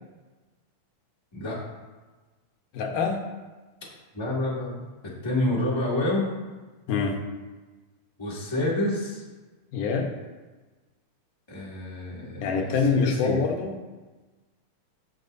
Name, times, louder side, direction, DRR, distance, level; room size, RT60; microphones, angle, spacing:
voice 1, 2.7-3.2 6.9-7.2 9.7-10.1 12.3-13.7, left 5 dB, 85° left, 2 dB, 2.7 m, -25 dB
voice 2, 4.1-6.3 8.2-9.2 11.5-13.4, left 1 dB, 10° left, -5 dB, 1.7 m, -28 dB
17.5 x 6.1 x 2.7 m, 1.3 s
omnidirectional pair, 3.6 m